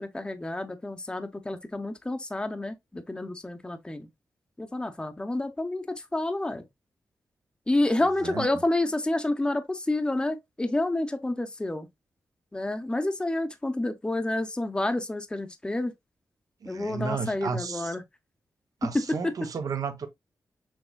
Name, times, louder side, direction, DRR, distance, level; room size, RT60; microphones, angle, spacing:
voice 1, 0.0-4.1 4.6-6.7 7.7-11.9 12.5-15.9 16.7-18.0 18.8-19.3, left 2 dB, 15° left, 0.7 m, -29 dB
voice 2, 16.6-18.0 18.8-20.1, right 5 dB, 65° right, 0.8 m, -33 dB
6.2 x 3.0 x 2.3 m
wide cardioid pair, 95°, 7 cm